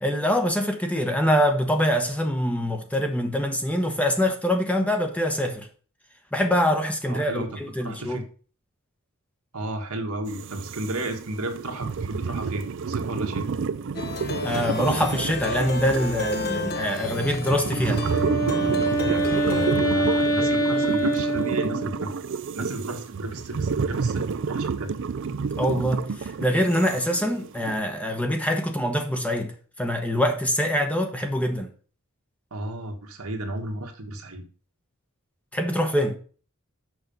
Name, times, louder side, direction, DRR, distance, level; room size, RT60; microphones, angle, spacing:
voice 1, 0.0-5.7 6.3-8.2 14.4-18.0 25.6-31.7 35.5-36.2, equal, 5° left, 0.9 m, -24 dB
voice 2, 7.1-8.2 9.5-13.4 19.0-22.2 22.5-24.9 32.5-34.4, right 1 dB, 80° right, 1.6 m, -33 dB
sound 1, 10.3-27.8, right 5 dB, 60° right, 0.4 m, -30 dB
Plucked string instrument, 13.9-19.7, left 2 dB, 45° left, 1.2 m, -31 dB
Wind instrument woodwind instrument, 17.6-22.2, right 1 dB, 85° left, 2.1 m, -25 dB
6.3 x 6.0 x 5.3 m
head